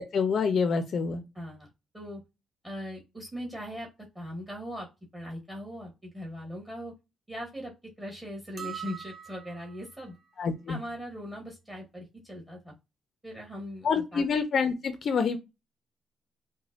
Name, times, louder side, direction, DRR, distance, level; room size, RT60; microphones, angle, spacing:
voice 1, 0.0-1.2 10.4-10.8 13.8-15.4, left 5 dB, 55° left, 0.5 m, -27 dB
voice 2, 1.3-1.7 1.9-2.2 2.6-3.9 4.1-4.9 5.1-6.9 7.3-7.7 8.0-10.2 10.7-12.7 13.2-14.2, equal, 15° right, 1.4 m, -40 dB
sound 1, 8.6-9.9, right 8 dB, 40° right, 0.5 m, -42 dB
4.9 x 2.2 x 2.4 m
cardioid pair, 90°, 0 cm